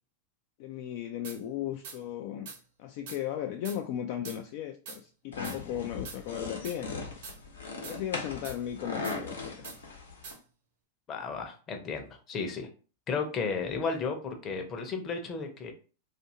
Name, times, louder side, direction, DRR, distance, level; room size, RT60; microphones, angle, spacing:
voice 1, 0.6-2.5 2.8-7.1 7.8-9.7, left 11 dB, 55° left, 4 dB, 0.3 m, -36 dB
sound 1, 1.2-1.4 1.8-2.0 2.5-2.6 3.1-3.2 3.6-3.8 4.2-4.4 4.9-5.0 5.4-5.6 6.1-6.2 6.6-6.8 7.2-7.4 7.8-8.0 8.4-8.6 9.0-9.2 9.6-9.8 10.2-10.4, right 5 dB, 65° right, 0.9 m, -43 dB
sound 2, 5.3-10.3, left 3 dB, 80° left, 0.9 m, -39 dB
voice 2, 11.1-12.7 13.1-15.7, left 4 dB, 30° left, 5 dB, 0.7 m, -33 dB
2.6 x 2.5 x 2.7 m, 0.37 s
hypercardioid pair, 95°, 0 cm